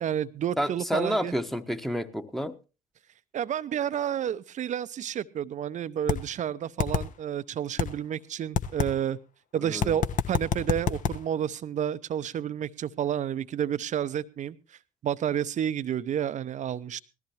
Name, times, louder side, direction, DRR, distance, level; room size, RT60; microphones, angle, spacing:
voice 1, 0.0-1.3 3.3-9.2 9.5-14.6 15.0-17.0, right 9 dB, 40° right, 16 dB, 0.7 m, -30 dB
voice 2, 0.6-2.6 9.6-10.0, equal, ahead, 9 dB, 1.2 m, -30 dB
sound 1, 6.1-6.2 6.8-7.0 7.8-7.9 8.6-8.9 9.8-11.2, left 8 dB, 45° left, 1.1 m, -25 dB
19.5 x 14.0 x 3.0 m, 0.31 s
figure-of-eight pair, 50°, 18 cm